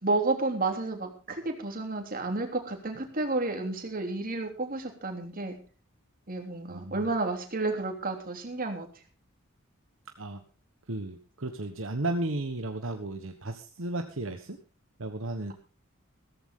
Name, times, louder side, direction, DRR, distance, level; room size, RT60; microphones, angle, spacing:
voice 1, 0.0-5.6 6.3-8.9, right 2 dB, 40° right, 4 dB, 3.3 m, -31 dB
voice 2, 6.7-7.1 10.2-10.4 10.9-14.6 15.0-15.5, right 2 dB, 65° right, 6 dB, 1.3 m, -34 dB
16.0 x 14.0 x 3.8 m, 0.38 s
head